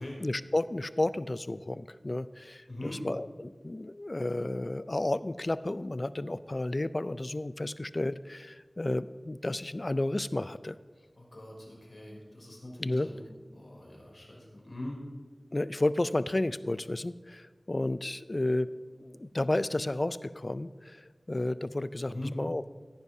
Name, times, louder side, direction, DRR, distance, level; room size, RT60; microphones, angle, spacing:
voice 1, 0.2-10.8 12.8-13.1 15.5-18.7 19.0-22.8, left 2 dB, 45° left, 15 dB, 0.3 m, -32 dB
voice 2, 2.7-3.0 11.2-13.2 13.5-15.0 22.1-22.3, left 1 dB, 65° left, -2 dB, 3.2 m, -42 dB
14.5 x 10.5 x 2.7 m, 1.4 s
wide cardioid pair, 50°, 0 cm